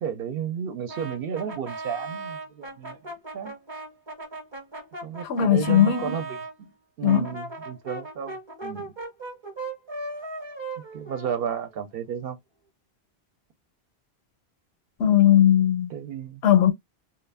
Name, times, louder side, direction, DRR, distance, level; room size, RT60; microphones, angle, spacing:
voice 1, 0.0-3.5 5.0-6.7 7.0-8.9 10.8-12.4 15.9-16.4, right 8 dB, 65° right, 0.7 m, -33 dB
Brass instrument, 0.9-6.5 7.0-11.8, right 2 dB, 30° right, 0.7 m, -37 dB
voice 2, 5.2-6.3 7.0-7.3 15.0-15.9 16.4-16.7, left 10 dB, 80° left, 0.8 m, -19 dB
2.2 x 2.1 x 3.3 m
omnidirectional pair, 1.1 m